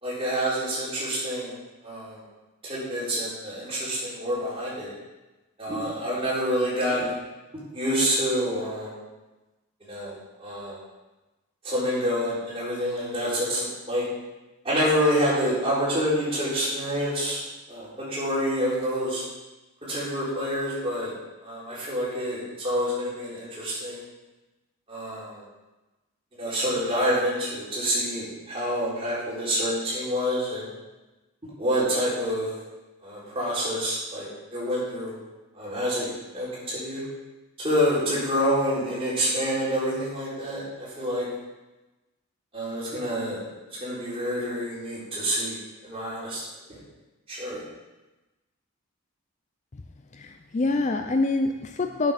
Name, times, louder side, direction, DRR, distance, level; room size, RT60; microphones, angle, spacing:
voice 1, 0.0-1.5 1.8-2.2 2.6-4.9 5.6-7.1 7.7-9.0 9.8-10.8 11.6-14.0 14.6-19.2 19.8-21.1 21.4-24.0 24.9-25.4 26.4-30.7 31.6-32.5 33.0-35.2 35.5-37.0 37.6-41.3 42.5-43.4 43.8-46.4 46.7-46.8 47.3-47.6, equal, 25° right, -8 dB, 3.9 m, -27 dB
voice 2, 50.1-52.1, left 3 dB, 30° left, 6 dB, 0.4 m, -25 dB
9.1 x 7.2 x 5.7 m, 1.1 s
head